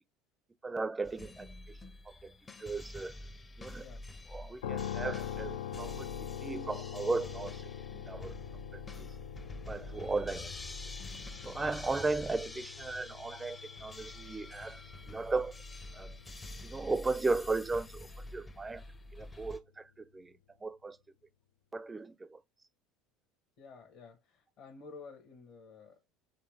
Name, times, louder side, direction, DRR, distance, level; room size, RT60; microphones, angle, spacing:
voice 1, 0.6-1.8 2.2-2.3 2.6-3.1 3.6-3.8 4.3-7.6 7.9-8.4 9.0-9.1 9.7-10.5 11.4-14.8 15.1-15.5 16.0-16.1 16.6-18.8 19.1-20.3 20.6-21.0 21.7-22.4, right 3 dB, 20° right, 0.4 m, -36 dB
sound 1, 1.0-19.6, left 2 dB, 25° left, 0.6 m, -47 dB
sound 2, 4.6-18.6, left 10 dB, 75° left, 0.3 m, -44 dB
voice 2, 23.6-26.1, left 4 dB, 60° left, 1.2 m, -52 dB
4.2 x 3.1 x 3.4 m
hypercardioid pair, 70°, 0 cm